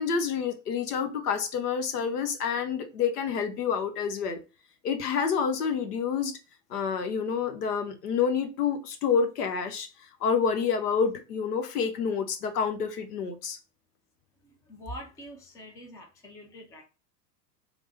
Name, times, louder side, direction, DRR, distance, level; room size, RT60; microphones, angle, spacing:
voice 1, 0.0-4.4 4.8-6.4 6.7-13.6, left 6 dB, 70° left, 0.8 m, -28 dB
voice 2, 14.4-16.8, equal, 5° left, 0.4 m, -44 dB
3.3 x 2.1 x 2.9 m
figure-of-eight pair, 95°, 49 cm